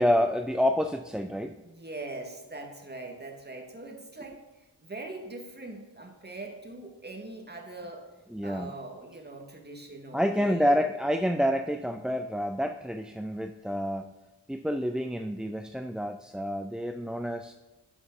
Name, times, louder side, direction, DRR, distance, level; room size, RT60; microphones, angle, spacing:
voice 1, 0.0-1.5 8.3-8.8 10.1-14.1 14.5-17.5, equal, ahead, 7 dB, 0.4 m, -28 dB
voice 2, 1.6-4.4 4.8-8.0 8.4-10.8, right 2 dB, 25° right, 2 dB, 2.0 m, -41 dB
11.5 x 6.1 x 4.0 m, 1.1 s
cardioid pair, 50°, 42 cm